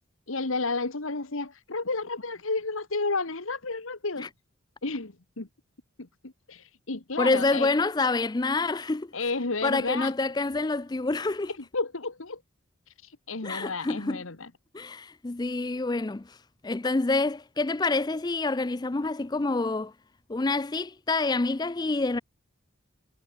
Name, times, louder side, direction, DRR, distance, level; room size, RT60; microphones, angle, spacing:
voice 1, 0.3-4.3 4.8-5.5 6.0-7.7 9.1-10.1 11.5-12.4 12.9-14.5, left 3 dB, 75° left, 1.8 m, -32 dB
voice 2, 7.2-9.1 9.6-11.5 13.4-14.2 14.7-16.4 16.6-19.9 20.3-22.2, left 3 dB, 20° left, 0.4 m, -27 dB
head